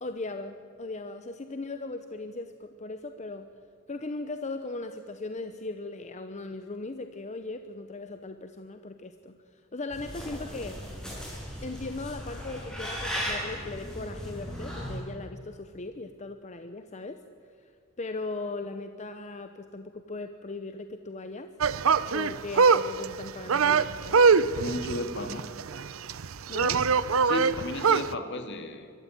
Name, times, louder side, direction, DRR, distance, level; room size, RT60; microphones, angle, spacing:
voice 1, 0.0-3.5 3.9-10.8 11.6-17.2 18.0-21.5 22.1-24.3 26.5-26.9, left 3 dB, 35° left, 8 dB, 0.8 m, -38 dB
sound 1, 9.9-15.0, equal, 5° left, 7.3 m, -36 dB
sound 2, 21.6-28.2, right 5 dB, 75° right, 0.6 m, -23 dB
voice 2, 24.6-25.5 27.2-28.9, left 1 dB, 60° left, 7 dB, 1.9 m, -34 dB
23.5 x 14.0 x 9.0 m, 2.3 s
head